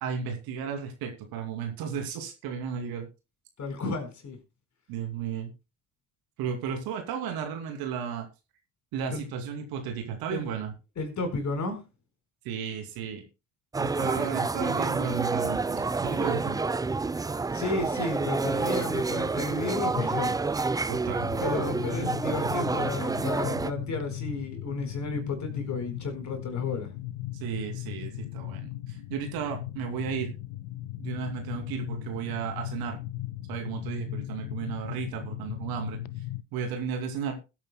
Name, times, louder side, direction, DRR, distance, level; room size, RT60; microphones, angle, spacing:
voice 1, 0.0-3.1 4.9-5.5 6.4-8.3 8.9-10.7 12.4-13.2 13.8-16.6 20.9-21.3 27.3-30.3 31.0-33.0 33.5-36.0 36.5-37.4, right 7 dB, 65° right, 4 dB, 2.7 m, -34 dB
voice 2, 3.6-4.4 9.1-9.2 10.3-10.5 11.0-11.8 17.5-20.4 21.4-26.9, left 3 dB, 45° left, 5 dB, 4.4 m, -32 dB
sound 1, 13.7-23.7, right 3 dB, 10° right, 0.4 m, -28 dB
sound 2, 21.2-36.4, left 15 dB, 70° left, 0.7 m, -38 dB
21.0 x 8.9 x 2.2 m, 0.29 s
hypercardioid pair, 50°, 38 cm